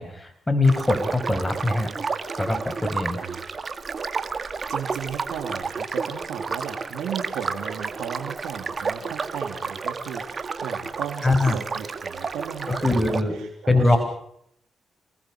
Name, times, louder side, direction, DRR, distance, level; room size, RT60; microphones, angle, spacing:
voice 1, 0.0-1.9 2.4-3.2 11.2-11.6 12.7-13.4 13.7-14.0, left 2 dB, 15° left, 9 dB, 6.1 m, -22 dB
sound 1, 0.6-13.2, right 4 dB, 45° right, 2.2 m, -31 dB
voice 2, 3.2-3.6 4.4-14.0, right 8 dB, 80° right, 4 dB, 3.2 m, -36 dB
29.0 x 20.0 x 6.4 m, 0.69 s
supercardioid pair, 50°, 0 cm